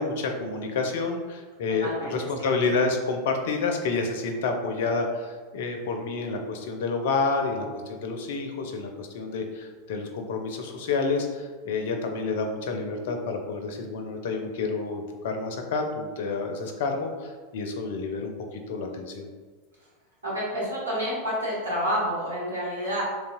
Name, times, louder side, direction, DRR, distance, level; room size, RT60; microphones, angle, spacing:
voice 1, 0.0-19.3, left 4 dB, 55° left, 4 dB, 0.4 m, -29 dB
voice 2, 1.8-2.5 20.2-23.1, equal, 75° right, -7 dB, 0.9 m, -29 dB
3.2 x 2.7 x 2.5 m, 1.4 s
figure-of-eight pair, 85°, 0 cm